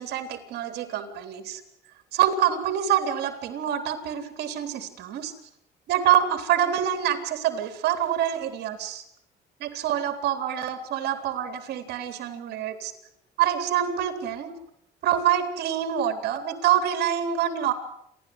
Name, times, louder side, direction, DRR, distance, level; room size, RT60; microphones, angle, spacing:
voice 1, 0.0-1.6 2.1-5.3 5.9-9.0 9.6-12.9 13.4-14.5 15.0-17.7, right 10 dB, 75° right, 9 dB, 3.7 m, -26 dB
29.0 x 12.5 x 9.7 m, 0.73 s
cardioid pair, 110°, 17 cm